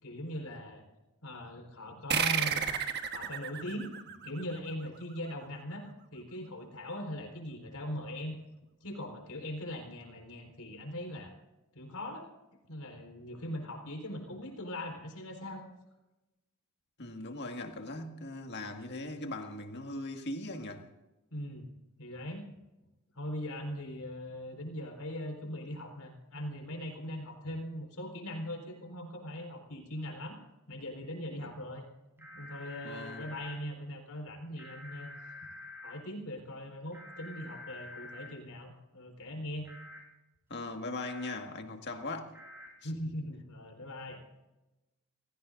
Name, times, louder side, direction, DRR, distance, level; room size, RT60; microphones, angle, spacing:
voice 1, 0.0-0.8 1.2-2.7 3.1-4.0 4.2-8.4 8.8-11.3 11.7-12.3 12.7-15.6 21.3-21.7 22.0-22.5 23.1-30.4 30.7-31.9 32.2-35.1 35.8-39.7 42.8-44.2, left 1 dB, 80° left, 4.3 m, -40 dB
sound 1, 2.1-5.1, right 7 dB, 50° right, 1.3 m, -33 dB
voice 2, 17.0-20.8 31.4-31.5 32.8-33.3 40.5-42.4 42.8-42.9, left 2 dB, 50° left, 1.8 m, -40 dB
sound 2, 32.2-33.6 34.6-35.9 36.9-38.3 39.7-40.0 41.0-41.3 42.3-42.7, left 2 dB, 10° right, 4.3 m, -48 dB
27.5 x 17.0 x 2.6 m
head